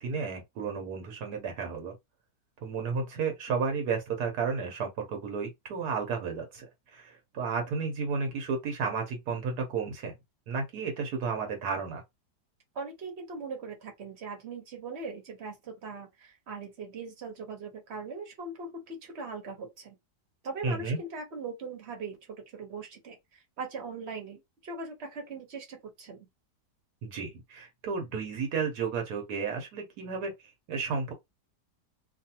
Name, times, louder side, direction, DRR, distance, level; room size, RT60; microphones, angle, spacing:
voice 1, 0.0-1.9 2.6-6.6 6.9-10.1 10.5-12.0 20.6-21.0 27.0-30.3 30.7-31.1, right 5 dB, 75° right, 1.2 m, -32 dB
voice 2, 12.7-20.0 20.4-22.2 22.5-23.2 23.6-26.3, right 4 dB, 45° right, 1.1 m, -40 dB
2.7 x 2.5 x 2.8 m
omnidirectional pair, 1.8 m